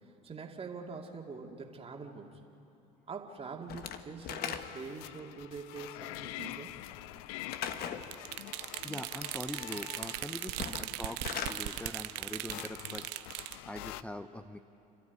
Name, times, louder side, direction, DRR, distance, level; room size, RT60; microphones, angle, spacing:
voice 1, 0.0-2.4 3.1-6.7 10.6-10.9, right 4 dB, 35° right, 1 dB, 2.5 m, -44 dB
Slam / Wood, 3.7-5.0 7.5-8.1 10.5-11.6, left 8 dB, 60° left, 1.3 m, -38 dB
sound 1, 4.6-14.0, left 16 dB, 80° left, 0.5 m, -46 dB
sound 2, 8.0-13.6, right 18 dB, 75° right, 0.7 m, -39 dB
voice 2, 8.8-11.2 11.5-13.3 13.6-14.6, left 1 dB, 5° left, 9 dB, 0.9 m, -43 dB
29.5 x 12.5 x 9.5 m, 2.8 s
hypercardioid pair, 75°, 18 cm